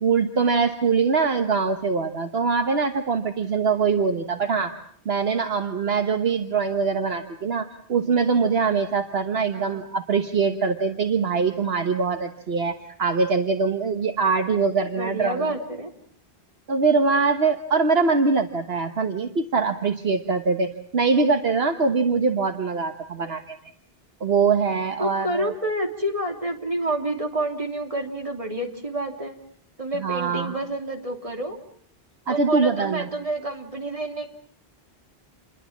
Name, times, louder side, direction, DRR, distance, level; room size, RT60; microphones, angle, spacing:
voice 1, 0.0-4.8 5.0-15.6 16.7-23.6 24.2-25.5 30.0-30.6 32.3-33.1, right 5 dB, 75° right, 6 dB, 1.5 m, -23 dB
voice 2, 14.9-15.9 25.0-29.3 29.8-31.6 32.3-34.3, right 1 dB, 35° right, 3 dB, 3.2 m, -28 dB
28.5 x 21.5 x 7.3 m, 0.63 s
omnidirectional pair, 1.0 m